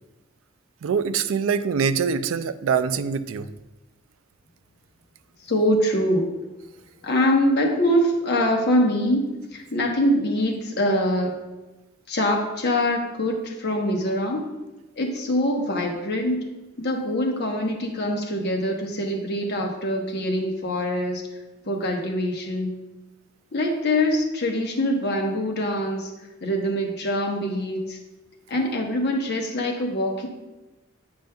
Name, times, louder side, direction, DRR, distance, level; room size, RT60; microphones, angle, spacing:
voice 1, 0.8-3.5, right 6 dB, 80° right, 13 dB, 0.3 m, -24 dB
voice 2, 5.4-6.3 7.0-11.4 12.1-14.5 15.0-16.4 16.8-21.2 21.7-22.8 23.5-26.1 26.4-28.0 28.5-30.3, left 1 dB, 55° left, 1 dB, 1.0 m, -24 dB
8.8 x 5.2 x 2.3 m, 1.1 s
head